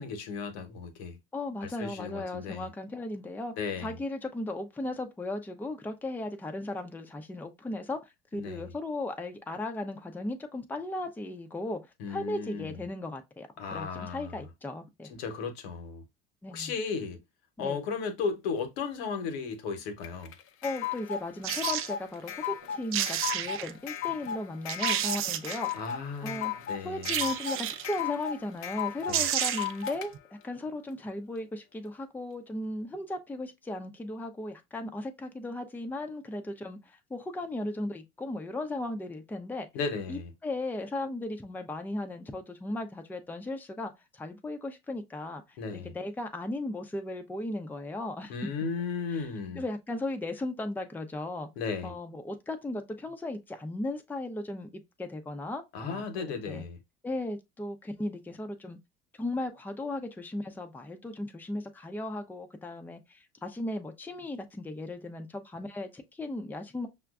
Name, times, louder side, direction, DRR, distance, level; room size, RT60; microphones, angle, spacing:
voice 1, 0.0-1.2 1.6-2.7 3.6-4.0 8.4-8.6 12.0-12.7 13.6-14.4 15.1-16.0 16.5-17.2 17.6-20.3 25.7-27.2 29.1-29.2 39.7-40.3 45.6-45.9 48.3-49.6 51.6-52.0 55.7-56.8, left 5 dB, 75° left, 0.9 m, -35 dB
voice 2, 1.3-8.0 8.3-11.8 12.1-15.1 16.4-16.7 17.6-17.8 20.6-25.7 26.2-26.5 26.8-30.1 30.4-39.7 40.1-48.5 49.1-49.3 49.5-51.5 51.8-56.6 57.0-58.8 59.2-66.9, left 2 dB, 5° left, 0.6 m, -36 dB
sound 1, 20.0-30.1, left 10 dB, 45° left, 0.6 m, -35 dB
sound 2, 21.4-21.9 22.6-22.7 22.9-23.7 24.3-24.4 24.7-25.7 27.0-27.9 28.8-28.9 29.1-29.8 30.1-30.2, right 11 dB, 45° right, 0.5 m, -30 dB
5.7 x 2.3 x 2.3 m
hypercardioid pair, 75°, 32 cm